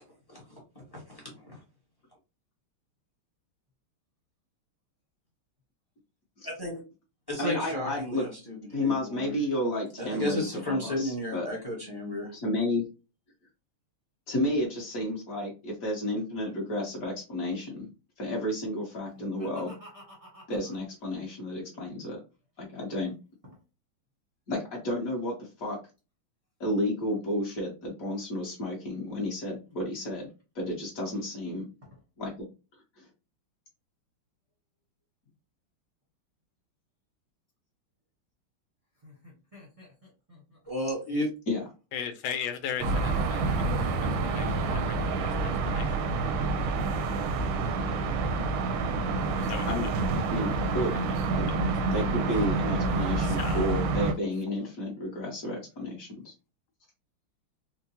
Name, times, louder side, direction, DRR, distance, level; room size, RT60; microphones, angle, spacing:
voice 1, 0.3-1.6 6.6-6.8 7.3-9.3 10.0-12.3 40.7-41.3, left 1 dB, 20° left, -2 dB, 0.5 m, -33 dB
voice 2, 7.4-8.2 8.7-11.5 12.3-12.8 14.3-17.9 18.2-19.7 20.5-22.2 22.6-23.1 24.5-25.8 26.6-30.3 30.5-31.7 32.2-32.5 33.0-33.1 41.5-41.6 49.7-49.9 50.3-50.9 51.3-51.5 51.9-56.3, left 1 dB, 50° left, -1 dB, 1.3 m, -31 dB
voice 3, 19.1-20.8 23.4-23.5 31.8-32.0 39.0-40.6 41.2-41.3, left 1 dB, 25° right, -3 dB, 0.7 m, -51 dB
voice 4, 41.9-43.9 44.2-46.0 49.5-49.7 50.9-51.1 51.5-51.6 52.4-52.6 53.2-53.7 54.6-54.7, left 8 dB, 80° left, 8 dB, 1.5 m, -38 dB
sound 1, 42.8-54.1, right 3 dB, 85° right, 1.5 m, -28 dB
4.5 x 2.1 x 2.7 m, 0.31 s
omnidirectional pair, 2.3 m